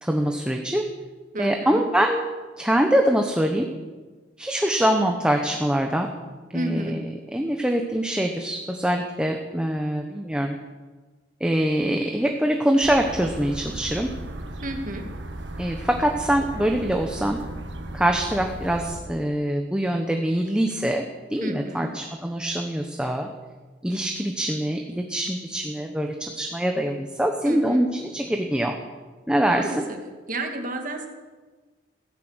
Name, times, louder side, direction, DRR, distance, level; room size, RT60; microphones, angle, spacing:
voice 1, 0.0-0.8 1.4-2.2 2.6-3.7 4.4-6.1 6.5-10.6 11.4-14.1 15.6-17.4 17.9-21.0 21.3-23.3 23.8-28.7 29.3-29.8, right 1 dB, 5° right, 3 dB, 1.0 m, -24 dB
voice 2, 1.3-1.8 6.5-7.0 14.6-15.1 21.4-21.9 27.4-27.9 29.5-30.0 30.3-31.1, right 1 dB, 45° right, 4 dB, 2.1 m, -31 dB
sound 1, 12.8-19.0, right 1 dB, 70° right, 1.5 m, -36 dB
16.5 x 10.5 x 8.1 m, 1.3 s
head